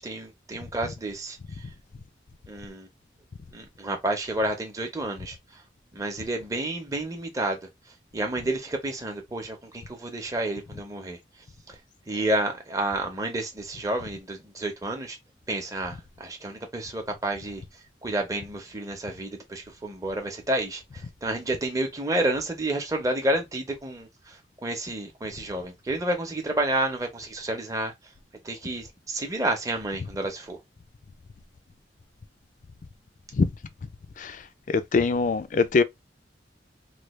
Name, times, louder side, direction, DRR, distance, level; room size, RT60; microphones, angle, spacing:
voice 1, 0.0-1.4 2.5-2.9 3.5-5.6 5.9-7.6 8.1-11.2 11.7-11.8 12.1-15.2 15.5-17.6 18.0-27.9 28.4-30.6, right 1 dB, 20° right, 0.7 m, -30 dB
voice 2, 34.7-35.8, left 4 dB, 45° left, 0.4 m, -22 dB
3.2 x 2.3 x 3.1 m
head